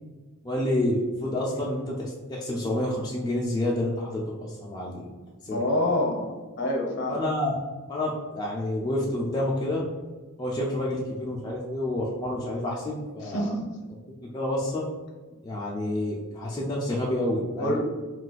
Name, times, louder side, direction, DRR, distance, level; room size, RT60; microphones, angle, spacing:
voice 1, 0.4-5.1 5.4-5.6 7.1-7.6 7.9-9.8 10.4-13.5 14.2-14.8 15.4-17.8, left 1 dB, 20° left, -4 dB, 0.3 m, -29 dB
voice 2, 5.5-6.3 6.6-7.2 13.2-13.6 17.6-17.8, left 1 dB, 55° left, 1 dB, 0.7 m, -26 dB
2.4 x 2.2 x 3.9 m, 1.3 s
head